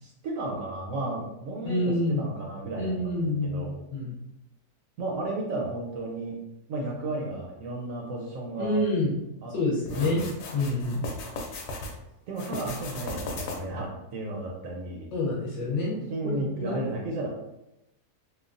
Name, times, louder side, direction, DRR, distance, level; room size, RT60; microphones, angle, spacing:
voice 1, 0.0-3.8 5.0-6.4 6.7-8.8 9.4-9.5 9.9-10.2 12.3-15.1 16.1-17.3, right 2 dB, 70° right, -2 dB, 0.8 m, -33 dB
voice 2, 1.6-2.3 2.8-4.1 8.6-9.1 9.5-10.2 10.5-11.0 15.1-16.0 16.3-16.8, left 2 dB, 60° left, -4 dB, 0.9 m, -27 dB
sound 1, 9.9-11.9 12.3-13.8, left 2 dB, 85° left, 1.1 m, -37 dB
3.1 x 2.2 x 2.4 m, 0.91 s
omnidirectional pair, 1.7 m